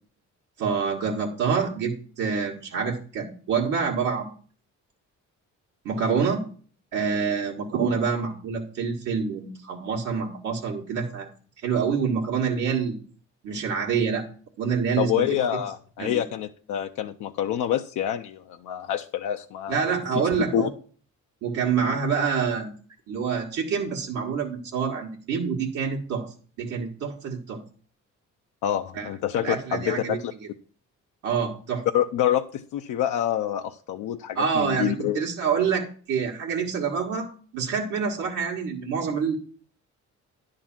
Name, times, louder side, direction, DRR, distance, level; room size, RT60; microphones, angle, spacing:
voice 1, 0.6-4.3 5.8-6.4 6.9-11.3 11.6-13.0 13.4-14.2 14.6-15.1 16.0-16.2 19.7-20.7 21.4-22.7 23.1-26.3 26.6-27.6 28.9-29.1 29.4-30.2 31.2-31.8 34.3-39.3, right 6 dB, 85° right, 1.6 m, -26 dB
voice 2, 15.0-20.2 20.5-20.7 28.6-30.3 31.9-35.2, left 11 dB, 80° left, 0.6 m, -27 dB
10.5 x 3.8 x 7.3 m
cardioid pair, 90°, 30 cm